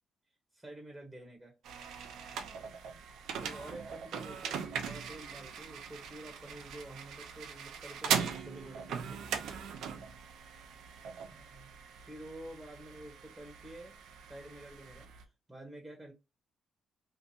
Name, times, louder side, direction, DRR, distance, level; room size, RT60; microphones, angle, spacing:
voice 1, 0.5-1.5 3.4-9.3 11.3-11.7 12.0-13.9 14.3-16.1, right 1 dB, 10° right, 0.8 m, -49 dB
sound 1, 1.6-15.2, right 7 dB, 80° right, 0.4 m, -40 dB
2.6 x 2.4 x 2.6 m
cardioid pair, 90°, 0 cm